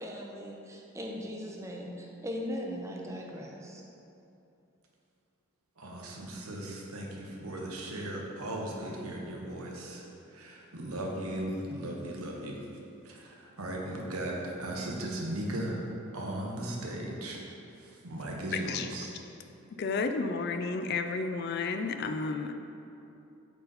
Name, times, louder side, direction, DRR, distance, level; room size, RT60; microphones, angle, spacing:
voice 1, 0.0-3.8, equal, 15° right, 0 dB, 0.6 m, -39 dB
voice 2, 5.8-12.7 13.0-15.9 16.1-17.4 17.8-19.1, right 1 dB, 85° right, -1 dB, 1.1 m, -37 dB
voice 3, 18.5-18.9 19.8-22.5, left 4 dB, 50° left, 7 dB, 0.3 m, -32 dB
8.2 x 4.1 x 4.0 m, 2.8 s
head